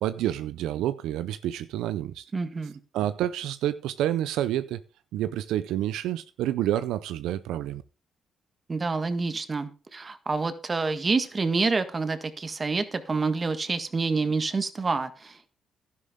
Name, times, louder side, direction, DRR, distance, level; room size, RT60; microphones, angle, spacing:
voice 1, 0.0-2.3 2.9-4.8 5.1-7.8, right 12 dB, 90° right, 0.5 m, -28 dB
voice 2, 2.3-2.7 8.7-15.5, right 4 dB, 30° right, 1.5 m, -28 dB
12.0 x 10.5 x 3.7 m
cardioid pair, 90°, 0 cm